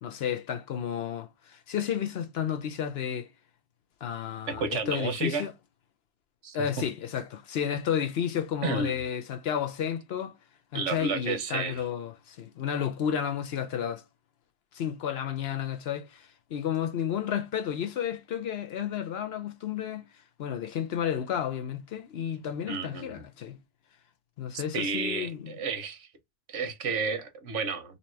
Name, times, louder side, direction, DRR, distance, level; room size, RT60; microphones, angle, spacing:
voice 1, 0.0-3.3 4.0-5.5 6.5-10.4 10.7-14.0 14.7-20.0 20.4-23.6 24.4-25.5, left 9 dB, 65° left, 0.8 m, -32 dB
voice 2, 4.5-5.5 6.4-6.6 8.6-9.0 10.7-11.8 22.7-23.2 24.5-26.1 26.5-28.0, right 4 dB, 90° right, 1.3 m, -31 dB
2.9 x 2.8 x 4.3 m
omnidirectional pair, 1.2 m